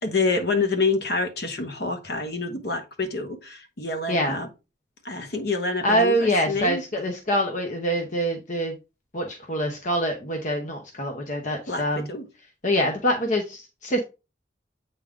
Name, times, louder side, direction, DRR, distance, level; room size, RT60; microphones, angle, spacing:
voice 1, 0.0-4.5 5.0-6.8 11.7-12.3, left 3 dB, 60° left, 1.2 m, -27 dB
voice 2, 5.8-8.8 9.1-12.1 12.6-14.0, equal, 45° left, 0.8 m, -25 dB
8.2 x 3.6 x 3.6 m
head